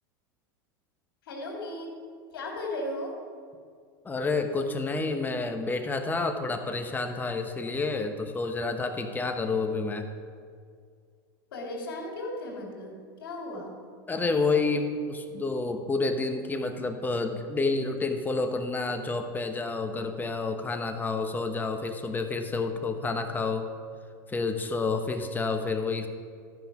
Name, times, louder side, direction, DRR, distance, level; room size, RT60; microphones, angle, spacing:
voice 1, 1.2-1.9 2.3-3.2 11.5-13.8, left 1 dB, 85° left, 1 dB, 2.6 m, -36 dB
voice 2, 4.0-10.1 14.1-23.7 24.3-26.1, left 3 dB, 15° left, 6 dB, 1.0 m, -29 dB
12.5 x 5.7 x 5.9 m, 2.1 s
supercardioid pair, 110°, 12 cm